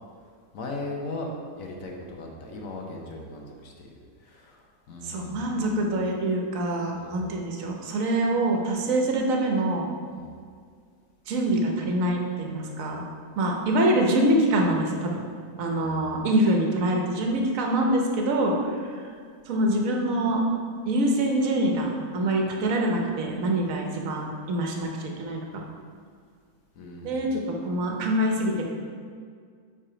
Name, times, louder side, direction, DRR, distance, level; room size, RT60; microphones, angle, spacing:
voice 1, 0.5-1.3 1.6-3.9 4.2-5.7 6.9-7.3 10.1-10.3 15.7-16.0 26.8-27.3, left 2 dB, 60° left, 0 dB, 1.2 m, -38 dB
voice 2, 5.0-9.9 11.3-13.0 13.4-15.2 15.6-19.0 19.5-20.4 20.9-25.6 27.0-28.7, right 1 dB, 60° right, 1 dB, 1.2 m, -25 dB
5.6 x 4.8 x 4.9 m, 2.1 s
omnidirectional pair, 1.7 m